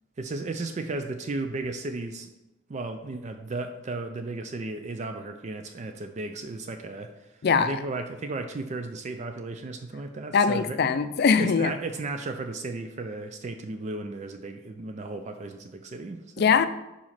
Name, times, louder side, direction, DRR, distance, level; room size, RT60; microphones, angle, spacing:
voice 1, 0.2-2.3 2.7-7.3 7.6-10.8 11.4-16.5, right 3 dB, 35° right, 6 dB, 0.4 m, -34 dB
voice 2, 7.4-7.8 10.3-11.7 16.4-16.7, left 5 dB, 50° left, 12 dB, 0.4 m, -21 dB
4.9 x 4.2 x 5.7 m, 0.97 s
head